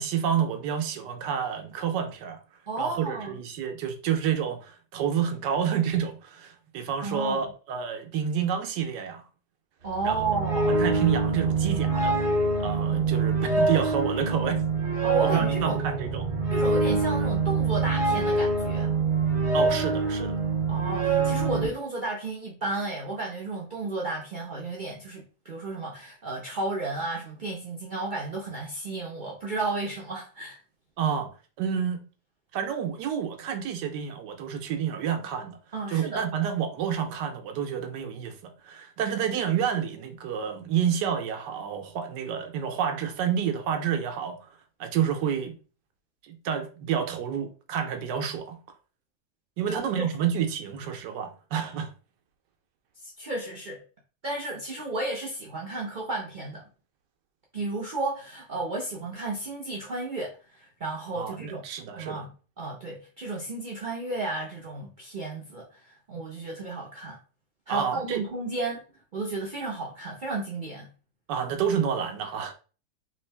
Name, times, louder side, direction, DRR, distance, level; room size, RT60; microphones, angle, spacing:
voice 1, 0.0-2.4 2.8-9.2 10.0-10.2 10.7-12.2 12.6-14.6 15.2-16.3 19.5-20.4 31.0-31.3 31.6-32.0 32.5-35.6 35.9-44.4 44.8-45.5 46.2-48.6 49.6-51.9 61.2-62.3 67.7-68.2 71.3-72.5, right 8 dB, 80° right, 1.3 m, -29 dB
voice 2, 2.7-3.4 7.0-7.5 9.8-10.8 15.0-15.8 16.5-18.9 20.7-30.6 35.7-36.3 49.7-50.1 53.0-53.8 54.2-56.6 57.5-61.6 61.9-67.2 67.7-68.8 69.1-70.9, right 2 dB, 65° right, 0.5 m, -33 dB
sound 1, 9.9-21.7, right 3 dB, 45° right, 1.5 m, -25 dB
3.7 x 2.6 x 3.3 m
omnidirectional pair, 1.9 m